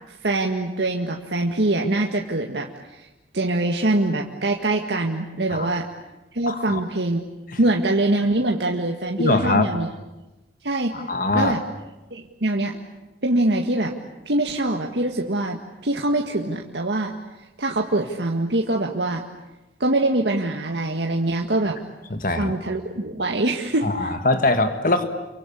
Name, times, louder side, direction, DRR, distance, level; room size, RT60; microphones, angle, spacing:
voice 1, 0.1-3.1 3.3-5.9 6.3-7.3 7.6-9.9 10.6-10.9 11.3-11.6 12.1-12.8 13.2-13.9 14.3-17.1 17.6-19.2 19.8-21.8 22.4-24.1, right 2 dB, 80° right, 1 dB, 1.8 m, -23 dB
voice 2, 6.5-6.8 7.5-7.6 9.2-9.7 10.9-11.6 22.1-22.5 23.8-25.0, left 2 dB, 50° left, 8 dB, 1.7 m, -22 dB
29.0 x 24.0 x 8.6 m, 1.0 s
head